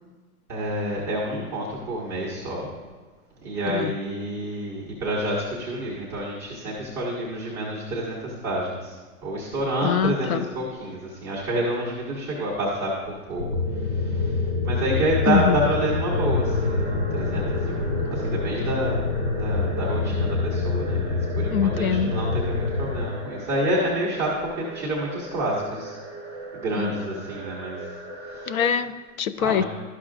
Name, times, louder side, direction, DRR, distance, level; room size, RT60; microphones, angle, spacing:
voice 1, 0.5-2.7 3.4-9.0 9.2-13.4 13.7-26.0 26.5-27.8 28.3-28.5 29.4-29.6, right 1 dB, 5° right, -8 dB, 0.4 m, -28 dB
voice 2, 9.8-10.5 15.3-15.6 21.5-22.2 26.7-27.3 28.5-29.6, left 7 dB, 65° left, 13 dB, 0.5 m, -24 dB
sound 1, 13.4-23.1, left 3 dB, 35° left, 0.9 m, -26 dB
sound 2, 15.4-28.7, right 2 dB, 15° left, 1.0 m, -39 dB
12.0 x 5.8 x 2.4 m, 1.4 s
hypercardioid pair, 145°, 46 cm